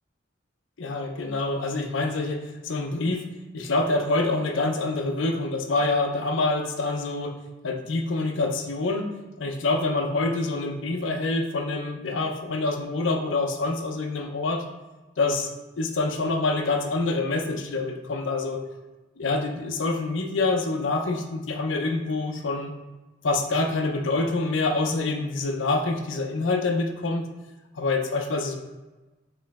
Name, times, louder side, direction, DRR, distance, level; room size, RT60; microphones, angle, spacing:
voice 1, 0.8-3.2 3.5-7.4 7.6-14.6 15.2-18.6 19.2-22.7 23.2-27.2 27.7-28.6, left 3 dB, 80° left, 4 dB, 0.6 m, -26 dB
4.3 x 3.1 x 3.5 m, 1.1 s
head